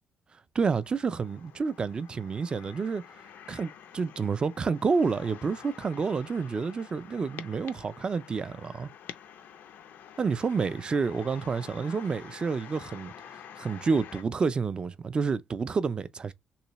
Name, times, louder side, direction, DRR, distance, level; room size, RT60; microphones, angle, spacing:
voice 1, 0.5-3.0 3.5-8.9 10.2-13.1 13.6-16.3, right 5 dB, 25° right, 0.4 m, -29 dB
sound 1, 0.8-14.2, left 8 dB, 65° left, 0.5 m, -48 dB
3.3 x 3.1 x 2.9 m
cardioid pair, 145°, 3 cm